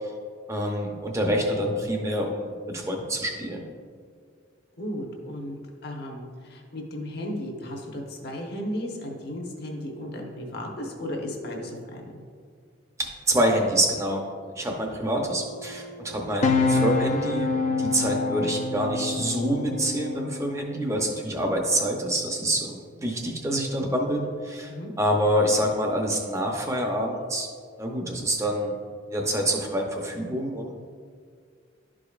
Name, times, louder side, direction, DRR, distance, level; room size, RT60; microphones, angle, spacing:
voice 1, 0.5-3.7 13.0-14.2 14.5-17.5 17.8-27.5 27.8-28.7 29.1-30.8, right 1 dB, 15° right, 1 dB, 0.7 m, -26 dB
voice 2, 4.8-12.2 24.7-24.9, left 1 dB, 50° left, 0 dB, 1.1 m, -35 dB
sound 1, 15.2-20.6, left 3 dB, 35° left, 0.5 m, -27 dB
11.5 x 5.0 x 2.4 m, 2.1 s
head